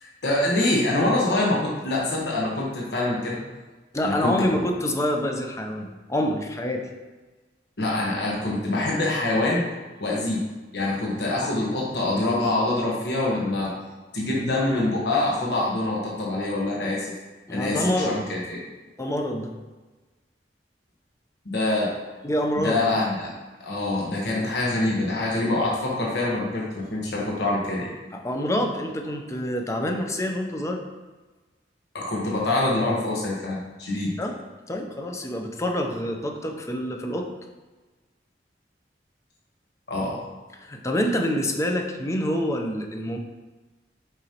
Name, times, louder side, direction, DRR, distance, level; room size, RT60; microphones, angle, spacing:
voice 1, 0.0-3.4 4.0-4.6 7.8-9.6 10.0-10.4 10.7-13.7 14.1-17.1 17.5-18.6 21.4-21.9 22.6-23.3 23.6-27.9 31.9-34.2 39.9-40.2, left 2 dB, 70° left, -4 dB, 1.2 m, -25 dB
voice 2, 3.9-6.9 17.5-18.3 19.0-19.5 22.2-22.9 28.1-30.8 34.2-34.4 34.7-37.3 40.6-43.2, left 1 dB, 15° left, 3 dB, 0.6 m, -27 dB
6.9 x 5.1 x 2.9 m, 1.2 s
head